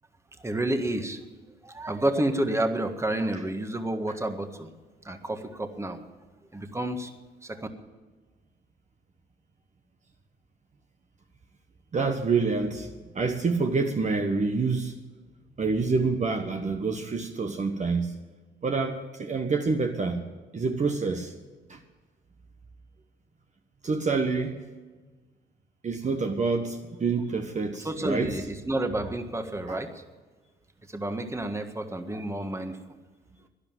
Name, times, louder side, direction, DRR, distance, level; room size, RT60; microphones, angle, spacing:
voice 1, 0.4-1.2 1.6-4.7 5.0-6.0 6.5-7.1 7.4-7.7 27.8-30.0 30.9-32.8, right 1 dB, 15° right, 7 dB, 1.6 m, -30 dB
voice 2, 11.9-12.9 13.1-14.9 15.6-18.1 18.6-20.2 20.5-21.3 21.7-21.8 23.8-24.6 25.8-28.3 29.7-29.8, right 4 dB, 40° right, 4 dB, 1.3 m, -27 dB
12.0 x 11.0 x 9.0 m, 1.3 s
supercardioid pair, 70°, 19 cm